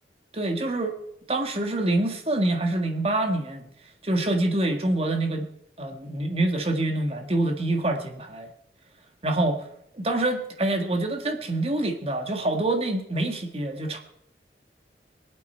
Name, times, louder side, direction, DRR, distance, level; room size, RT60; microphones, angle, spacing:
voice 1, 0.3-1.0 1.3-3.6 4.0-5.5 5.8-8.5 9.2-9.7 9.9-14.0, right 2 dB, 35° right, 4 dB, 1.7 m, -26 dB
24.5 x 8.5 x 4.5 m, 0.73 s
head